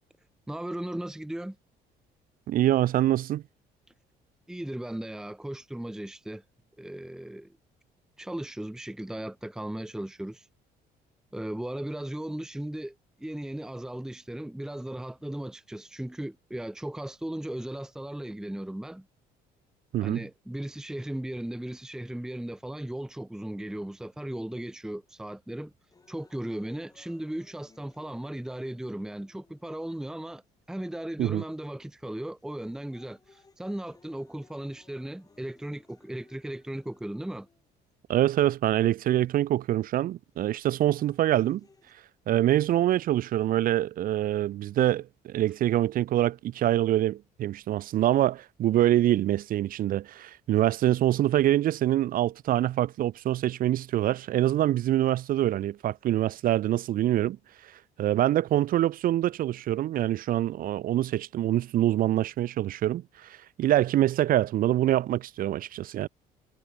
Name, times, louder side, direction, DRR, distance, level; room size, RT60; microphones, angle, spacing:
voice 1, 0.5-1.6 4.5-6.4 6.8-7.6 8.2-10.5 11.3-19.1 20.0-25.7 26.1-30.4 30.7-37.5, right 1 dB, 5° right, 0.9 m, -36 dB
voice 2, 2.5-3.4 19.9-20.2 31.2-31.4 38.1-41.6 42.3-57.4 57.6-66.1, right 13 dB, 55° right, 0.6 m, -25 dB
sound 1, 25.9-29.9 30.7-30.8 31.6-31.9 32.4-37.9 38.9-39.0 40.4-41.9, left 4 dB, 20° left, 4.6 m, -61 dB
cardioid pair, 110°, 17 cm